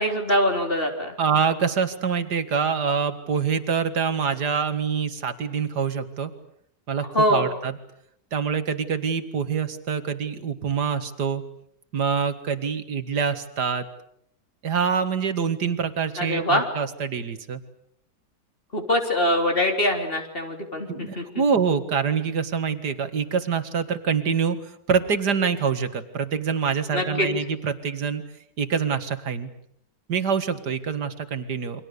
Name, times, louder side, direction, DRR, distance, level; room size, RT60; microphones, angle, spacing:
voice 1, 0.0-1.1 7.1-7.5 16.2-16.7 18.7-21.4 26.9-27.3, equal, 30° left, 3 dB, 4.0 m, -23 dB
voice 2, 1.2-6.3 6.9-7.7 8.3-11.4 11.9-13.9 14.6-17.6 20.9-24.6 24.9-28.2 28.6-29.5 30.1-31.8, right 6 dB, 75° right, 10 dB, 2.4 m, -25 dB
29.5 x 25.0 x 6.8 m, 0.69 s
omnidirectional pair, 1.8 m